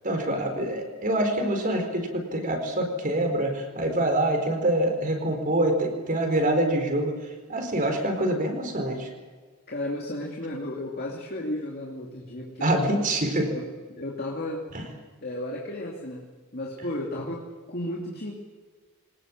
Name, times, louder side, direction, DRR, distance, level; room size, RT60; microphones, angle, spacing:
voice 1, 0.0-9.1 12.6-13.5 14.7-14.8, right 1 dB, 40° right, 4 dB, 4.5 m, -25 dB
voice 2, 9.7-12.9 13.5-14.7 15.2-18.3, left 1 dB, 45° left, -1 dB, 2.7 m, -34 dB
24.0 x 20.0 x 7.5 m, 1.4 s
head